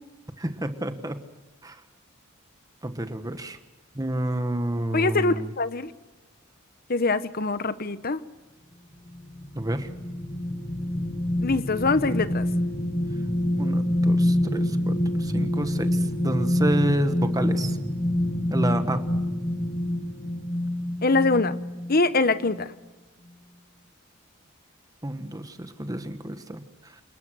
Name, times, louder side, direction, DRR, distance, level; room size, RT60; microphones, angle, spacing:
voice 1, 0.4-1.2 1.6-1.8 2.8-3.6 3.9-5.5 9.5-9.9 13.6-17.8 18.5-19.0 25.0-27.0, right 1 dB, 15° right, 1.4 m, -29 dB
voice 2, 4.9-5.9 6.9-8.2 11.4-12.5 21.0-21.5 21.9-22.7, left 3 dB, 45° left, 1.0 m, -23 dB
sound 1, 9.1-22.0 22.5-22.6, left 1 dB, 20° left, 1.7 m, -26 dB
28.5 x 20.5 x 6.4 m
head